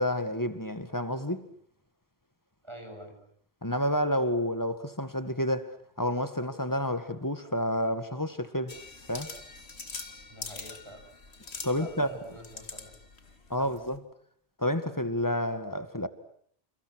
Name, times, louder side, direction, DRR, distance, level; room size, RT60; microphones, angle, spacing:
voice 1, 0.0-1.5 3.6-8.8 9.1-9.3 11.6-12.1 13.5-14.0 14.6-16.1, left 1 dB, 20° left, 1.9 m, -29 dB
voice 2, 2.6-3.2 10.3-11.0 11.7-12.9 13.6-13.7, equal, 25° right, 7.4 m, -46 dB
sound 1, 8.7-14.0, left 3 dB, 80° left, 2.5 m, -44 dB
29.5 x 29.5 x 6.3 m
omnidirectional pair, 1.1 m